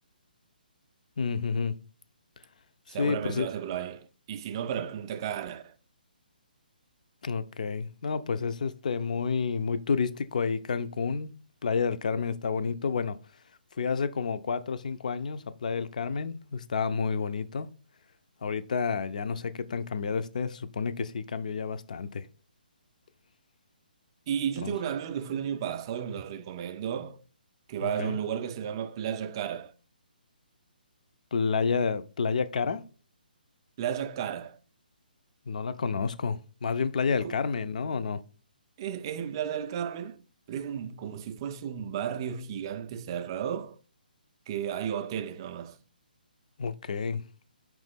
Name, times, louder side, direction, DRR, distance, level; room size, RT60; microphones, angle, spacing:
voice 1, 1.2-1.7 2.9-3.5 7.2-11.3 11.6-13.2 13.8-17.7 18.4-22.2 24.6-24.7 27.8-28.2 31.3-32.8 35.5-38.2 46.6-47.2, left 5 dB, 50° left, 0.4 m, -30 dB
voice 2, 2.9-5.7 24.3-27.2 27.7-29.7 33.8-34.6 37.1-37.4 38.8-40.2 40.5-43.8 44.5-45.8, right 9 dB, 25° right, 0.3 m, -33 dB
4.9 x 3.0 x 3.5 m
figure-of-eight pair, 135°, 5 cm